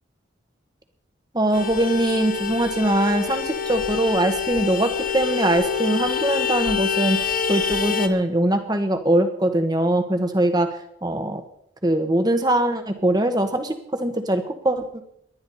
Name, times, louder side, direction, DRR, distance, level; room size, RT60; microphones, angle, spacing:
voice 1, 1.3-7.2 7.4-10.7 11.0-11.4 11.8-15.0, right 1 dB, 20° right, 7 dB, 1.4 m, -22 dB
Vehicle horn car horn honking, 1.5-8.1, left 6 dB, 45° left, 1.1 m, -26 dB
19.5 x 12.0 x 4.3 m, 0.73 s
head